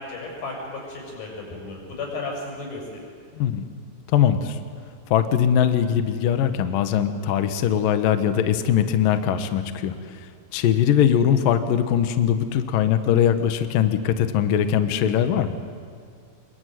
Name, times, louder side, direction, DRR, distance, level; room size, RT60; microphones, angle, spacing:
voice 1, 0.0-2.8, left 3 dB, 45° left, 0 dB, 8.2 m, -34 dB
voice 2, 3.4-3.7 4.1-4.6 5.1-10.0 10.5-15.6, left 9 dB, 70° left, 9 dB, 2.1 m, -21 dB
27.5 x 22.5 x 9.3 m, 2.3 s
omnidirectional pair, 5.9 m